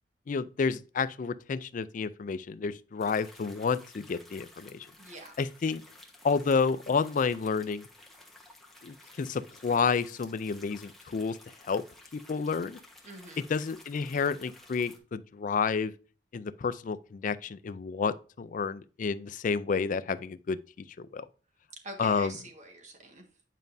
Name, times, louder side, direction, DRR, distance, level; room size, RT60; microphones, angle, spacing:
voice 1, 0.3-4.9 5.4-5.8 6.2-7.9 8.8-11.4 11.6-11.8 12.1-12.8 13.5-15.9 16.3-20.6 21.0-21.2 22.0-22.3, left 5 dB, 45° left, 0.4 m, -30 dB
sound 1, 3.0-15.0, left 2 dB, ahead, 1.1 m, -54 dB
voice 2, 5.0-5.3 13.0-13.4 21.8-23.2, right 1 dB, 45° right, 1.5 m, -45 dB
9.1 x 5.2 x 2.6 m
head